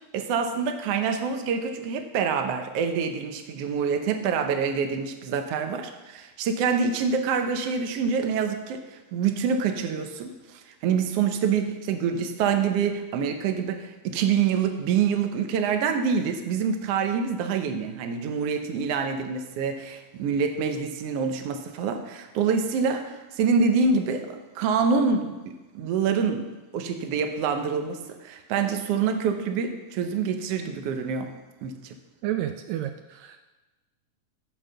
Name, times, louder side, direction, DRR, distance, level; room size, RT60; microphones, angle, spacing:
voice 1, 0.1-26.5 26.7-31.3 31.6-32.0, right 6 dB, 70° right, 6 dB, 1.5 m, -26 dB
voice 2, 32.2-33.5, right 12 dB, 90° right, 7 dB, 1.5 m, -31 dB
13.0 x 4.8 x 6.7 m, 1.1 s
omnidirectional pair, 3.8 m